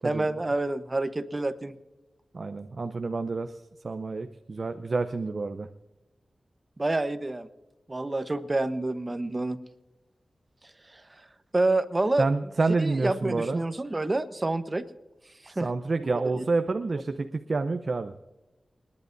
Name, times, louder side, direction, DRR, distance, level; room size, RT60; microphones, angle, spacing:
voice 1, 0.0-1.7 6.8-7.5 7.9-9.6 10.6-11.0 11.5-12.3 12.8-14.8 15.4-15.7 16.3-16.4 16.9-17.0, right 2 dB, 35° right, 11 dB, 1.0 m, -28 dB
voice 2, 2.3-5.7 12.2-13.6 15.5-18.1, right 3 dB, 60° right, 7 dB, 0.7 m, -28 dB
28.0 x 10.5 x 2.7 m, 1.1 s
cardioid pair, 50°, 0 cm